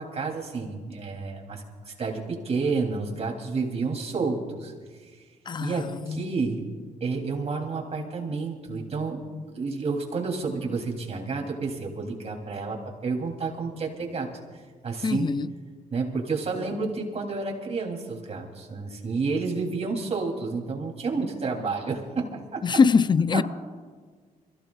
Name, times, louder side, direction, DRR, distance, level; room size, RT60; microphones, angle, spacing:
voice 1, 0.0-4.7 5.6-6.6 7.0-9.2 9.5-15.3 15.9-22.6 23.3-23.4, right 4 dB, 45° right, 3.4 m, -30 dB
voice 2, 5.5-6.3 15.0-15.5 22.6-23.4, left 5 dB, 30° left, 0.4 m, -23 dB
26.0 x 16.0 x 2.5 m
cardioid pair, 80°, 15 cm